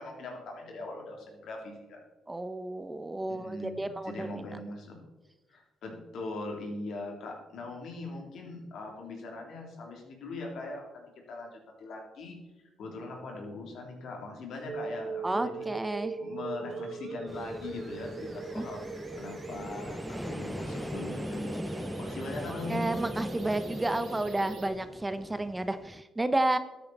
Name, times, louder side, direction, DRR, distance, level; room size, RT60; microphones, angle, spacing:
voice 1, 0.0-2.0 3.3-5.0 5.5-12.4 12.8-15.6 16.2-22.9, left 2 dB, 70° left, 1 dB, 3.1 m, -41 dB
voice 2, 2.3-4.4 15.2-16.2 18.6-18.7 22.7-26.6, right 2 dB, 15° right, 11 dB, 0.8 m, -31 dB
sound 1, 14.7-24.7, right 4 dB, 60° right, 2.2 m, -40 dB
sound 2, 17.3-26.0, equal, 5° left, 0.4 m, -40 dB
12.5 x 8.6 x 4.2 m, 1.1 s
cardioid pair, 90°, 0 cm